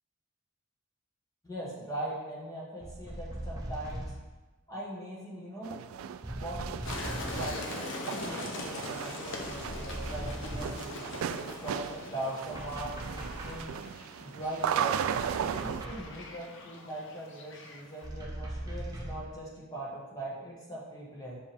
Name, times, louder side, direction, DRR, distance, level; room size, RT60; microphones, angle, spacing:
voice 1, 1.4-4.0 4.7-5.8 6.3-13.8 14.2-15.0 15.4-21.4, right 1 dB, 15° left, -6 dB, 1.2 m, -41 dB
sound 1, 2.8-4.3 6.2-7.7 9.4-10.9 12.5-13.8 15.1-16.1 18.0-19.3, right 1 dB, 20° right, 0.8 m, -40 dB
sound 2, 5.6-15.8, right 8 dB, 90° right, 0.3 m, -36 dB
sound 3, 6.8-18.1, left 2 dB, 65° left, 0.8 m, -42 dB
7.3 x 5.2 x 3.4 m, 1.2 s
head